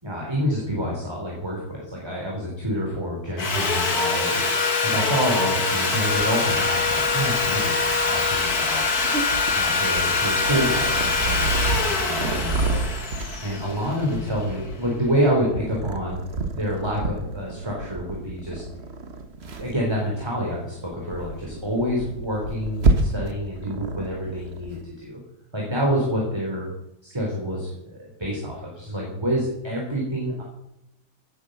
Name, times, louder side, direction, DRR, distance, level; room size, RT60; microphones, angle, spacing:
voice 1, 0.0-4.5 4.8-8.8 9.5-12.8 13.4-16.2 16.6-18.6 19.6-25.2 25.5-26.7 27.0-30.4, equal, 10° right, -2 dB, 3.4 m, -27 dB
Sawing, 3.4-14.4, left 4 dB, 50° left, 2.3 m, -24 dB
Purr, 6.1-24.8, right 3 dB, 35° right, 1.3 m, -30 dB
17.0 x 9.2 x 6.5 m, 0.85 s
omnidirectional pair, 2.2 m